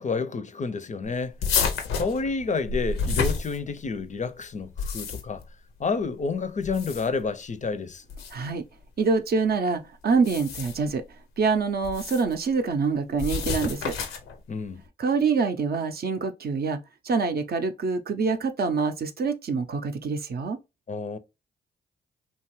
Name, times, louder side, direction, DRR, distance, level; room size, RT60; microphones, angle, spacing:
voice 1, 0.0-5.4 5.8-8.0 14.5-14.8 20.9-21.2, left 4 dB, 35° left, 0.5 m, -30 dB
sound 1, 1.4-4.0 4.6-5.4 6.6-7.3 8.1-8.3 10.1-10.9 11.8-12.3 13.2-14.4, left 5 dB, 80° left, 0.6 m, -29 dB
voice 2, 8.3-8.6 9.0-11.0 11.4-13.9 15.0-16.8 17.0-20.6, right 4 dB, 50° right, 0.5 m, -25 dB
2.7 x 2.3 x 3.0 m
hypercardioid pair, 40°, 21 cm